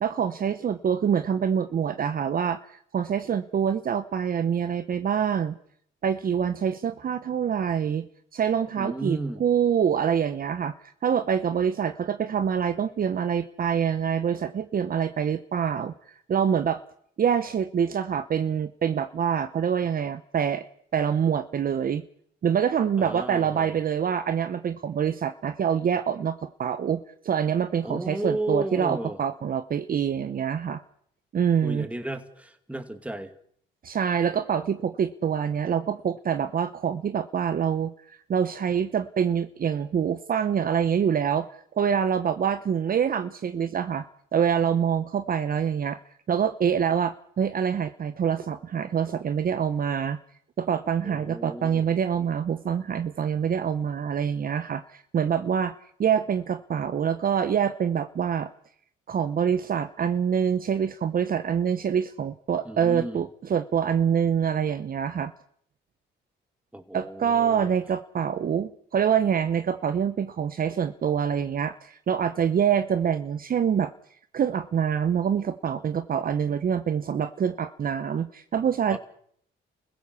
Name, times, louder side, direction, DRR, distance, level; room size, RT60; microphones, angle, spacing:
voice 1, 0.0-5.6 6.0-8.1 8.3-10.7 11.0-16.8 17.2-20.6 20.9-22.0 22.4-30.8 31.3-31.9 33.8-37.9 38.3-41.5 41.7-44.0 44.3-46.0 46.3-50.2 50.6-55.7 56.0-58.5 59.1-65.3 66.9-73.9 74.3-79.0, right 8 dB, 45° right, 11 dB, 0.9 m, -25 dB
voice 2, 8.8-9.4 23.0-23.8 27.8-29.2 31.6-33.3 51.0-51.9 62.6-63.2 66.7-67.7 78.9-79.0, right 1 dB, 5° right, 7 dB, 2.4 m, -33 dB
29.0 x 16.0 x 7.0 m, 0.65 s
cardioid pair, 90°, 20 cm